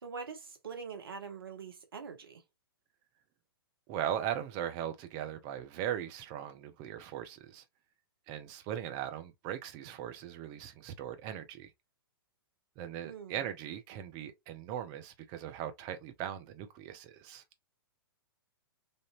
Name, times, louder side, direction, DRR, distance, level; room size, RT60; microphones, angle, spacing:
voice 1, 0.0-2.4 13.0-13.4, right 5 dB, 70° right, 1.1 m, -44 dB
voice 2, 3.9-7.6 8.3-11.7 12.8-17.4, right 10 dB, 35° right, 0.7 m, -39 dB
3.5 x 2.6 x 2.5 m
figure-of-eight pair, 115°, 13 cm